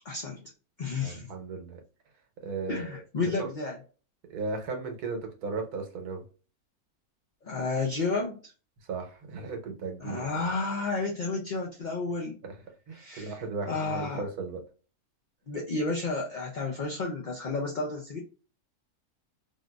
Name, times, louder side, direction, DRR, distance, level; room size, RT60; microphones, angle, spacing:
voice 1, 0.0-0.4 0.8-1.3 2.7-3.8 7.4-8.5 10.0-12.4 13.0-13.3 13.7-14.2 15.5-18.2, left 3 dB, 50° left, -1 dB, 0.5 m, -31 dB
voice 2, 1.0-1.8 2.4-3.5 4.3-6.2 8.8-10.5 12.4-12.6 12.9-14.6, right 4 dB, 80° right, 4 dB, 1.4 m, -36 dB
3.7 x 2.5 x 2.3 m, 0.36 s
omnidirectional pair, 1.6 m